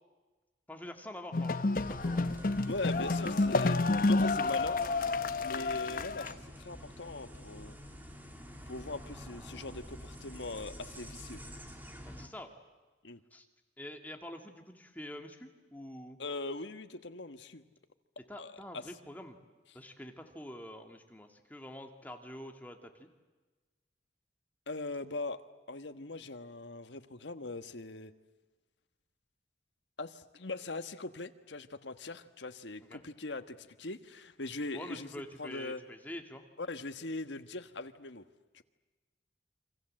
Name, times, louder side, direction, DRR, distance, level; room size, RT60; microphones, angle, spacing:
voice 1, 0.7-1.6 2.0-2.3 12.1-12.5 13.3-13.5 13.8-16.2 18.3-19.4 19.7-23.1 32.8-33.0 34.7-36.4, left 1 dB, 10° left, 4 dB, 2.2 m, -46 dB
sound 1, 1.3-6.3, left 3 dB, 50° left, 0.9 m, -30 dB
sound 2, 1.8-12.3, equal, 10° right, 2.6 m, -48 dB
voice 2, 2.6-3.8 4.1-4.8 5.4-7.8 8.7-11.4 13.0-13.2 16.2-17.7 18.4-18.8 24.7-25.4 25.7-28.1 30.0-35.1 35.4-35.8 36.6-38.2 38.5-38.6, left 2 dB, 80° left, 9 dB, 1.4 m, -41 dB
28.5 x 25.5 x 7.8 m, 1.3 s
head